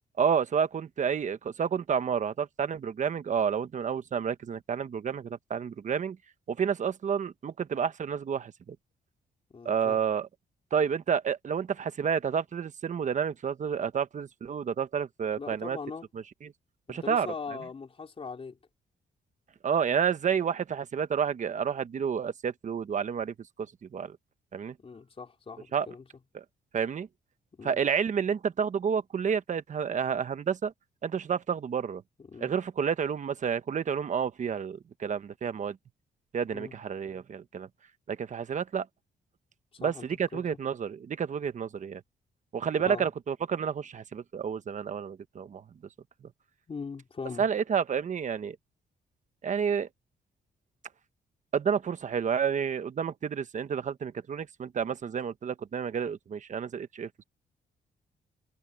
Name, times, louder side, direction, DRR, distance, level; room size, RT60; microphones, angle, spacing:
voice 1, 0.2-6.2 6.5-8.7 9.6-10.3 10.7-15.8 16.4-16.5 16.9-17.3 19.6-23.3 23.9-24.2 24.5-24.7 25.7-25.9 26.3-26.4 26.7-27.1 27.6-30.7 31.0-32.0 32.4-35.8 36.3-37.7 38.1-38.9 39.8-42.0 42.5-45.6 47.4-48.6 49.4-49.9 51.5-57.1, right 7 dB, 45° right, 1.2 m, -30 dB
voice 2, 9.5-10.0 15.4-16.1 16.9-18.6 24.8-26.0 27.6-27.8 32.2-32.5 36.5-36.8 39.7-40.4 42.8-43.1 46.7-47.5, left 5 dB, 35° left, 4.6 m, -40 dB
cardioid pair, 120°, 17 cm